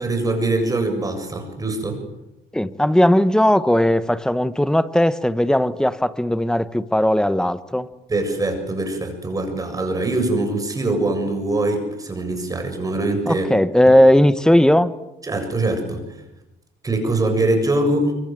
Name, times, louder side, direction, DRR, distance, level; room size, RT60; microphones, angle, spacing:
voice 1, 0.0-2.0 8.1-13.5 13.9-14.0 15.2-16.0 16.8-18.1, right 2 dB, 20° right, 7.3 m, -23 dB
voice 2, 2.5-7.9 13.3-14.9, left 1 dB, 5° left, 1.2 m, -17 dB
25.0 x 24.5 x 7.9 m
cardioid pair, 110°, 17 cm